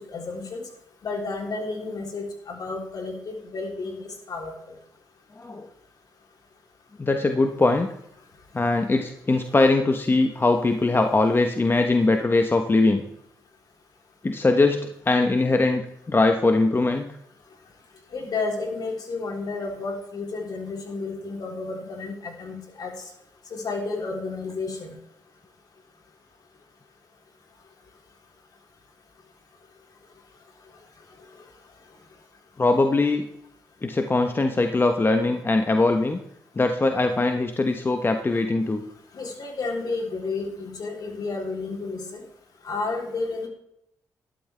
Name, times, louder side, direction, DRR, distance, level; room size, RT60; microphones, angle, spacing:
voice 1, 0.1-0.6 1.0-4.5 18.1-22.9 23.5-24.9 39.1-42.2 42.6-43.5, left 3 dB, 60° left, 1 dB, 3.5 m, -31 dB
voice 2, 5.4-5.7 7.0-7.9 8.5-13.0 14.2-15.8 16.1-17.2 32.6-33.3 33.8-36.2 36.6-38.8, left 2 dB, 30° left, 6 dB, 1.2 m, -21 dB
12.5 x 11.5 x 3.4 m, 0.76 s
supercardioid pair, 55°, 8 cm